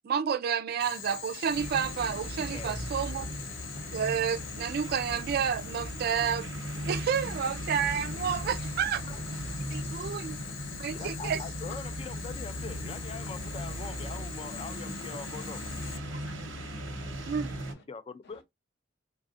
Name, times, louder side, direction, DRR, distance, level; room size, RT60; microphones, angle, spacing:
voice 1, 0.0-3.3 3.9-9.0 9.7-10.4 10.7-11.4 17.2-17.5, right 7 dB, 55° right, 0.3 m, -30 dB
Boiling, 0.8-16.0, left 9 dB, 90° left, 0.5 m, -43 dB
sound 1, 1.5-17.7, equal, 85° right, 0.9 m, -38 dB
voice 2, 9.2-9.8 10.3-10.5 16.1-16.4 16.7-17.8 18.2-18.4, left 2 dB, 55° left, 0.7 m, -54 dB
voice 3, 10.9-15.7 17.7-18.4, left 5 dB, 30° left, 0.3 m, -42 dB
3.3 x 2.4 x 2.4 m
head